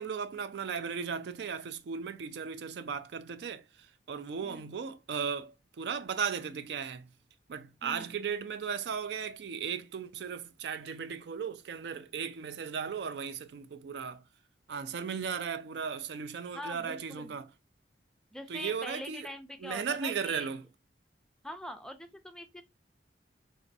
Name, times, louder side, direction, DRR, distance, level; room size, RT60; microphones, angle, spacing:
voice 1, 0.0-7.1 7.5-14.2 14.7-17.5 18.5-19.3 19.6-20.6, right 6 dB, 70° right, 0.4 m, -36 dB
voice 2, 16.5-17.3 18.3-20.5 21.4-22.6, equal, 5° left, 0.4 m, -43 dB
4.1 x 2.6 x 2.6 m
head